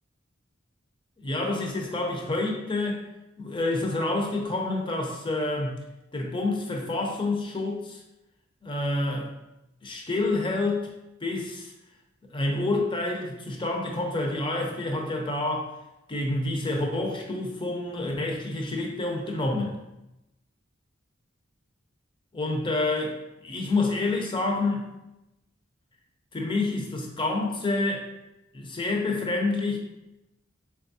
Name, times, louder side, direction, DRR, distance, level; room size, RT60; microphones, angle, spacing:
voice 1, 1.2-3.0 3.4-5.8 6.1-8.0 8.6-9.3 9.8-10.9 11.2-11.7 12.3-15.7 16.1-19.8 22.3-24.9 26.3-28.1 28.5-29.8, left 2 dB, 25° left, 1 dB, 0.6 m, -28 dB
3.8 x 3.4 x 2.7 m, 0.92 s
head